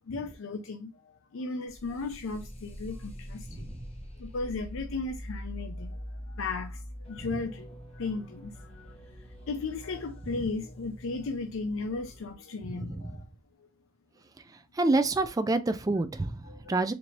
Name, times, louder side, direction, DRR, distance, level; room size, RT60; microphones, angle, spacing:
voice 1, 0.1-3.7 4.2-6.0 6.3-6.8 7.1-8.9 9.5-13.2 16.4-16.7, left 3 dB, 70° left, 0.4 m, -36 dB
sound 1, 1.7-12.3, equal, 30° left, 1.0 m, -44 dB
voice 2, 12.7-13.2 14.8-16.4 16.7-16.9, right 2 dB, 15° right, 0.3 m, -27 dB
4.5 x 2.7 x 2.8 m
head